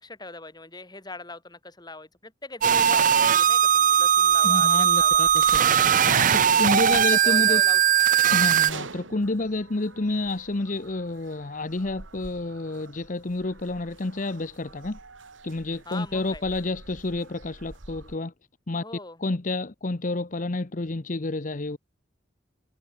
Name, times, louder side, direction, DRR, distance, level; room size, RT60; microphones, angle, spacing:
voice 1, 0.0-5.3 6.7-7.8 8.1-8.2 15.8-16.4 18.8-19.2, left 2 dB, 20° left, 3.2 m, -41 dB
sound 1, 2.6-8.7, right 8 dB, 45° right, 0.6 m, -19 dB
sound 2, 4.1-18.2, right 3 dB, 85° right, 1.9 m, -47 dB
voice 2, 4.4-5.6 6.1-7.6 8.3-15.0 15.4-18.3 18.7-18.8 19.2-21.8, left 2 dB, 45° left, 0.9 m, -29 dB
head